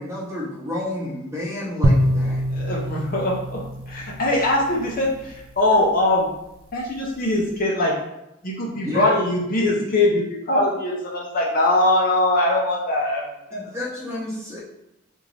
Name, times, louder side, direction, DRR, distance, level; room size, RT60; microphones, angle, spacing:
voice 1, 0.0-2.4 8.8-9.2 13.5-14.6, left 2 dB, 15° right, -6 dB, 1.0 m, -30 dB
sound 1, 1.8-5.1, equal, 85° right, 0.5 m, -24 dB
voice 2, 2.5-6.3 6.7-7.9 8.4-13.7, left 1 dB, 45° left, -3 dB, 0.7 m, -22 dB
3.5 x 2.6 x 3.2 m, 0.88 s
head